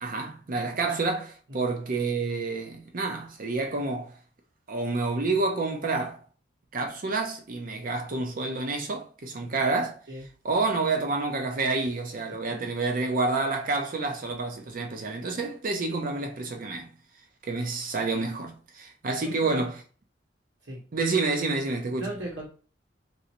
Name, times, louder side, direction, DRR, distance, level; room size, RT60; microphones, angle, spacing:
voice 1, 0.0-4.1 4.7-6.2 6.7-10.0 10.4-16.9 17.4-19.8 20.9-22.1, right 3 dB, 50° right, 0.6 m, -29 dB
voice 2, 19.2-19.6 20.6-20.8 22.0-22.5, right 1 dB, 85° right, 1.2 m, -37 dB
3.1 x 2.7 x 2.9 m
head